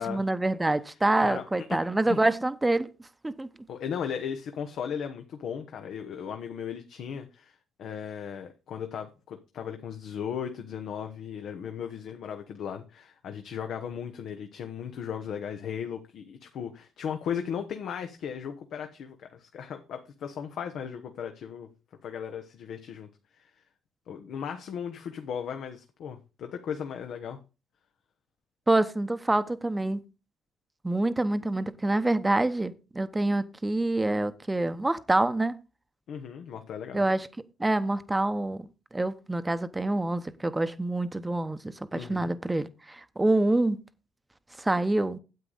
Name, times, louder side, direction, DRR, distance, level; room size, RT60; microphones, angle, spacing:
voice 1, 0.0-2.9 3.2-3.5 28.7-30.0 30.8-35.6 36.9-37.3 37.6-38.7 38.9-41.6 41.9-43.8 44.6-45.2, right 2 dB, 15° right, 0.9 m, -26 dB
voice 2, 0.9-1.4 2.1-2.2 3.7-21.7 22.0-23.1 23.3-23.6 24.1-27.4 36.1-37.0 41.9-42.3, left 8 dB, 70° left, 1.0 m, -36 dB
9.3 x 7.9 x 4.0 m
supercardioid pair, 75°, 0 cm